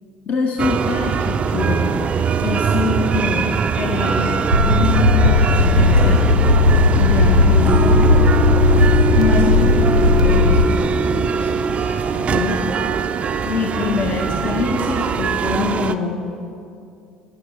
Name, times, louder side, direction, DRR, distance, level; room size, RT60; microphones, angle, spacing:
voice 1, 0.3-2.0 2.4-6.5 7.0-8.2 9.1-11.5 12.2-12.8 13.4-16.3, left 5 dB, 40° left, 1 dB, 1.0 m, -25 dB
sound 1, 0.6-15.9, right 6 dB, 35° right, 0.5 m, -21 dB
sound 2, 4.5-10.7, left 4 dB, 80° left, 0.6 m, -15 dB
14.0 x 9.4 x 4.1 m, 2.5 s
figure-of-eight pair, 60°, 4 cm